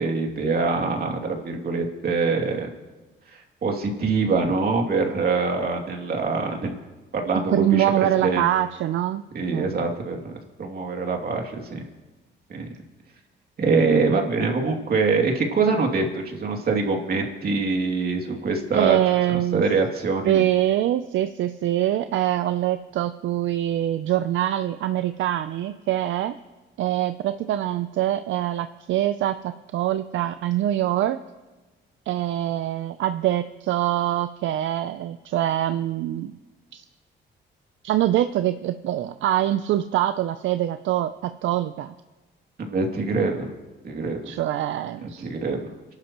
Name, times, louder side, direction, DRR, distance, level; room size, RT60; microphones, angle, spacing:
voice 1, 0.0-2.7 3.3-6.8 7.1-7.9 8.2-8.4 9.3-10.3 10.6-11.8 12.5-12.7 13.6-19.0 19.5-20.4 42.6-43.5 43.8-44.2 45.0-45.6, right 4 dB, 50° right, 1 dB, 2.7 m, -24 dB
voice 2, 7.5-9.2 9.5-9.7 18.7-19.6 20.2-26.3 26.8-31.2 32.1-36.4 36.7-36.8 37.8-41.9 44.3-45.3, right 12 dB, 75° right, 10 dB, 0.5 m, -24 dB
28.5 x 11.5 x 3.0 m, 1.2 s
cardioid pair, 90°, 20 cm